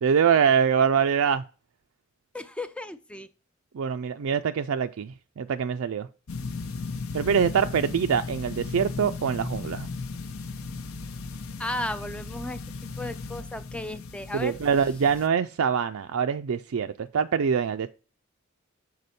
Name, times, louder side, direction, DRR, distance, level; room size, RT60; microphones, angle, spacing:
voice 1, 0.0-1.4 3.7-6.1 7.1-9.9 14.3-17.9, right 7 dB, 70° right, 0.4 m, -24 dB
voice 2, 2.3-3.3 11.6-12.6 13.0-14.6, left 1 dB, 5° left, 0.3 m, -34 dB
sound 1, 6.3-15.3, left 4 dB, 75° left, 0.8 m, -36 dB
6.8 x 4.1 x 4.2 m
head